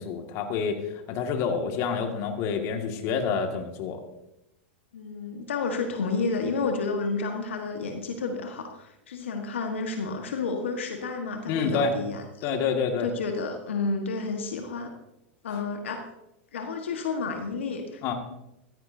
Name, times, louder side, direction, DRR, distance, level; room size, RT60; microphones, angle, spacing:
voice 1, 0.0-4.0 11.5-11.9 12.4-13.1 18.0-18.1, left 5 dB, 50° left, 4 dB, 2.0 m, -28 dB
voice 2, 4.9-12.5 13.0-14.9 15.4-16.0 16.5-18.0, left 4 dB, 80° left, 4 dB, 1.5 m, -31 dB
14.5 x 13.5 x 2.7 m, 0.88 s
hypercardioid pair, 105°, 6 cm